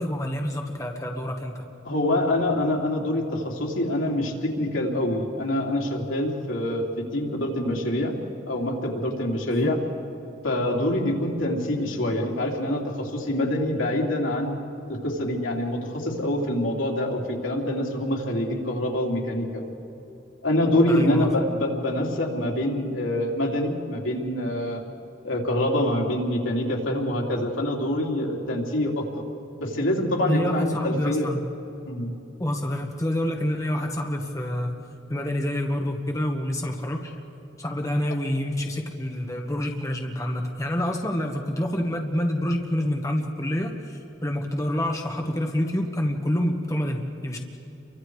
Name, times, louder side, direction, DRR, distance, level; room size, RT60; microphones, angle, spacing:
voice 1, 0.0-1.6 9.5-9.7 20.9-21.3 30.3-31.4 32.4-34.8 35.1-37.1 37.6-47.4, left 1 dB, 15° left, 1 dB, 1.3 m, -27 dB
voice 2, 1.8-6.9 7.1-8.1 8.4-9.8 10.4-14.5 14.9-19.6 20.4-24.8 25.2-29.2 29.6-31.3 31.9-32.1, left 1 dB, 85° left, -1 dB, 3.1 m, -25 dB
30.0 x 24.0 x 4.8 m, 2.9 s
head